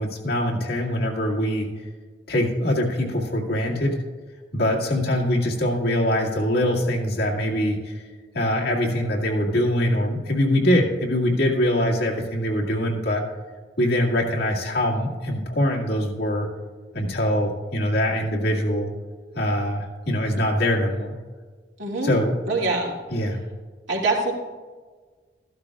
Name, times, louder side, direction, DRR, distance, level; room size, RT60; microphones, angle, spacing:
voice 1, 0.0-1.7 2.3-4.0 4.5-7.9 8.3-13.2 13.8-16.5 16.9-18.9 19.3-21.1 22.0-22.3 23.1-23.4, left 1 dB, 60° left, -2 dB, 2.1 m, -23 dB
voice 2, 21.8-22.1 22.5-22.9 23.9-24.3, right 3 dB, 80° right, -3 dB, 2.6 m, -24 dB
14.0 x 12.0 x 2.4 m, 1.5 s
head